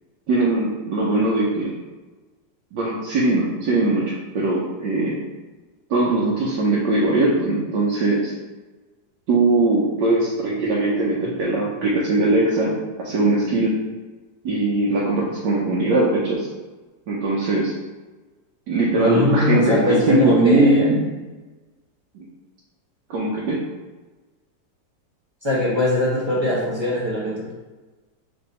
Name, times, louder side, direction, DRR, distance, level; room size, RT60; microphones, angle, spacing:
voice 1, 0.3-1.7 2.7-5.2 5.9-8.3 9.3-13.8 14.4-16.5 17.1-17.7 18.7-21.0 22.1-22.2 23.1-23.6, right 2 dB, 70° right, -5 dB, 1.3 m, -20 dB
voice 2, 19.0-20.9 25.4-27.5, left 1 dB, 30° right, -9 dB, 0.4 m, -21 dB
3.8 x 2.6 x 4.2 m, 1.2 s
omnidirectional pair, 2.0 m